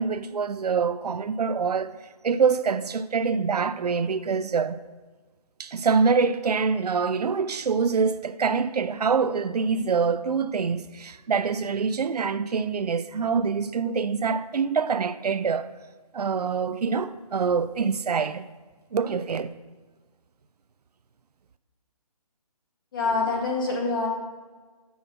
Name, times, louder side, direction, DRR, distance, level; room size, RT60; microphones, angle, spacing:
voice 1, 0.0-1.9 2.2-4.8 5.6-15.7 16.1-18.4 18.9-19.5, right 5 dB, 85° right, 0.6 m, -25 dB
voice 2, 22.9-24.1, left 3 dB, 35° left, 2.1 m, -25 dB
7.5 x 7.1 x 5.7 m
hypercardioid pair, 170°, 20 cm